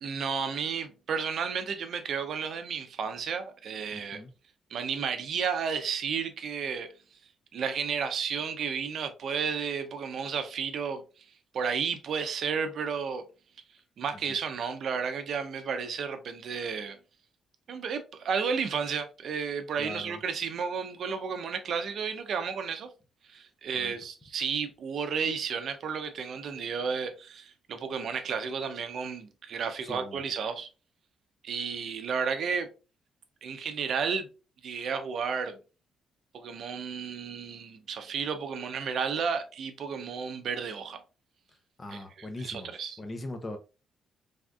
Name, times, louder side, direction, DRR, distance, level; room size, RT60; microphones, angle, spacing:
voice 1, 0.0-4.2 4.7-6.9 7.5-11.3 11.5-13.2 14.0-17.0 17.7-22.9 23.3-30.7 31.4-32.7 33.4-34.3 34.6-35.6 36.3-41.0 41.9-43.0, right 6 dB, 60° right, 0.5 m, -32 dB
voice 2, 3.9-4.3 14.3-14.4 19.8-20.2 23.7-23.9 29.8-30.2 41.8-42.7 43.0-43.6, left 1 dB, 25° left, 0.6 m, -40 dB
3.4 x 2.5 x 2.3 m
cardioid pair, 110°, 0 cm